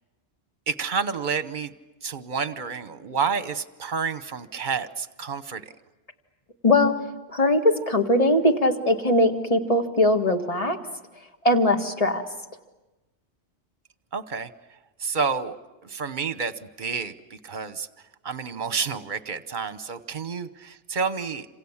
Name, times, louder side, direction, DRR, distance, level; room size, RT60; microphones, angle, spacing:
voice 1, 0.7-1.7 2.0-5.7 14.1-14.5 15.0-15.6 15.8-16.5 16.8-17.9 18.2-21.5, right 5 dB, 45° right, 12 dB, 1.1 m, -29 dB
voice 2, 7.3-10.8 11.4-12.2, left 1 dB, 35° left, 4 dB, 1.9 m, -20 dB
27.5 x 26.5 x 7.3 m, 1.1 s
omnidirectional pair, 1.1 m